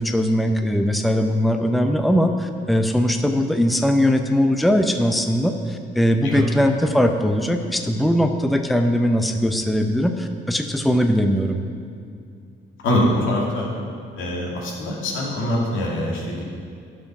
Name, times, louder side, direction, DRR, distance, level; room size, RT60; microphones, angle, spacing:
voice 1, 0.0-11.6, equal, ahead, 5 dB, 0.7 m, -20 dB
voice 2, 12.8-13.7 14.2-16.4, left 1 dB, 85° left, -3 dB, 2.3 m, -23 dB
11.5 x 5.6 x 6.0 m, 2.3 s
cardioid pair, 90°, 20 cm